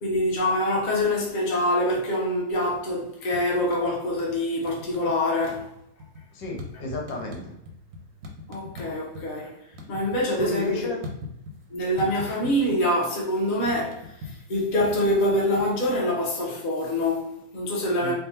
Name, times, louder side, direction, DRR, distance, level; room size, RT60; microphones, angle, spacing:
voice 1, 0.0-5.7 8.5-9.5 9.9-10.9 11.7-18.1, left 1 dB, 40° left, 0.7 m, -25 dB
sound 1, 2.5-3.0 3.3-4.4 4.6-5.1 5.4-9.3 9.6-11.7 12.0-12.8 13.1-16.0, left 2 dB, 55° right, 0.7 m, -40 dB
voice 2, 6.3-7.5 10.4-11.0 18.0-18.1, left 1 dB, 75° left, 1.5 m, -32 dB
3.6 x 2.4 x 4.1 m
omnidirectional pair, 1.9 m